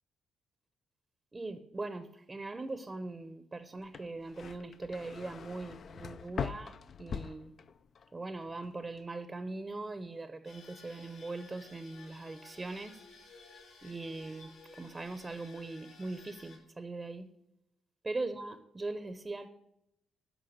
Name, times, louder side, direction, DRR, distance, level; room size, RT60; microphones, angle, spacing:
voice 1, 1.3-7.5 8.1-13.0 13.8-17.3 18.0-19.5, right 2 dB, 20° right, 11 dB, 0.7 m, -41 dB
sound 1, 3.8-8.1 8.4-9.0, left 7 dB, 50° left, 0.4 m, -42 dB
sound 2, 10.4-16.6, left 3 dB, 80° left, 4.0 m, -55 dB
10.0 x 5.5 x 6.4 m, 0.84 s
cardioid pair, 90°, 0 cm